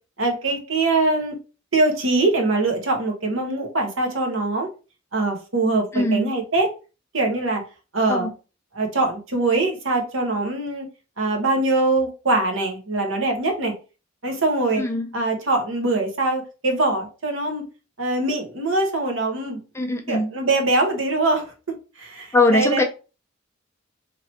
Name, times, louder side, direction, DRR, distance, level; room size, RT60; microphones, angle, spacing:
voice 1, 0.2-1.4 1.7-4.7 5.1-6.7 7.1-7.6 7.9-8.3 8.7-10.9 11.2-13.7 14.2-14.8 15.1-17.6 18.0-19.6 20.1-21.5 22.0-22.8, right 2 dB, 75° right, 1.1 m, -22 dB
voice 2, 5.9-6.3 8.1-8.3 14.8-15.1 19.7-20.3 22.3-22.8, left 2 dB, 15° left, 0.5 m, -21 dB
3.0 x 2.8 x 4.2 m
head